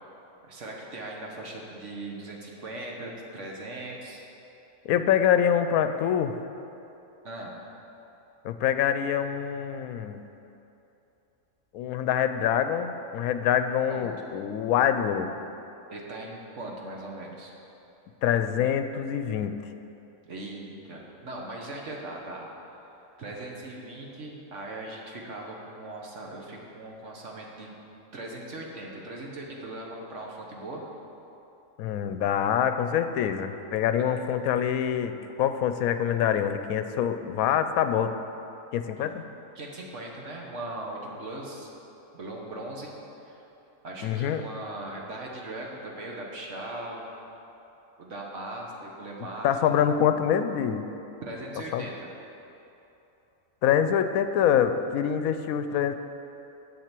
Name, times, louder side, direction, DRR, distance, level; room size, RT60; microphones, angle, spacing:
voice 1, 0.4-4.2 7.2-7.6 13.9-14.1 15.9-17.5 20.3-22.5 23.2-27.7 28.1-30.8 39.5-41.7 42.1-42.9 43.3-43.4 43.8-47.1 48.0-49.8 51.2-52.1, right 2 dB, 55° right, -1 dB, 1.5 m, -39 dB
voice 2, 4.8-6.3 8.4-10.3 11.7-15.4 18.2-19.5 31.8-38.1 38.7-39.2 44.0-44.4 49.4-50.9 51.7-51.8 53.6-55.9, left 9 dB, 75° left, 9 dB, 1.0 m, -25 dB
7.5 x 6.9 x 8.2 m, 2.9 s
omnidirectional pair, 1.5 m